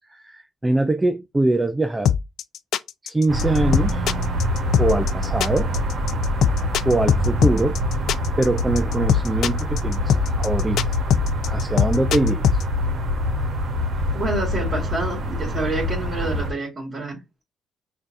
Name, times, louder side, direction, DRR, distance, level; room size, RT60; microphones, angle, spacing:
voice 1, 0.0-2.1 3.0-4.0 4.8-5.7 6.9-7.8 8.4-10.8 11.5-12.6, right 2 dB, 15° right, 0.4 m, -23 dB
sound 1, 2.0-12.6, left 8 dB, 75° left, 0.3 m, -20 dB
sound 2, 3.3-16.5, left 1 dB, 60° right, 1.2 m, -25 dB
voice 2, 14.1-17.2, right 2 dB, 35° right, 1.9 m, -28 dB
6.0 x 2.7 x 2.6 m
cardioid pair, 90°, 0 cm